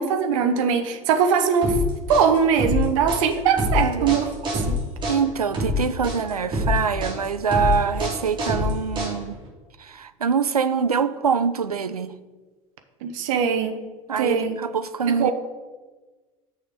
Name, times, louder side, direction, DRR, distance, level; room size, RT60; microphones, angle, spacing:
voice 1, 0.0-1.7 2.1-4.7 13.0-13.7 14.2-14.5 15.2-15.3, right 6 dB, 60° right, 8 dB, 0.7 m, -21 dB
sound 1, 1.6-9.5, left 2 dB, 25° right, 2.5 m, -25 dB
voice 2, 3.8-4.2 5.1-9.4 9.8-12.1 14.1-15.3, right 6 dB, 85° right, 14 dB, 0.4 m, -24 dB
6.6 x 5.0 x 5.7 m, 1.3 s
figure-of-eight pair, 70°, 19 cm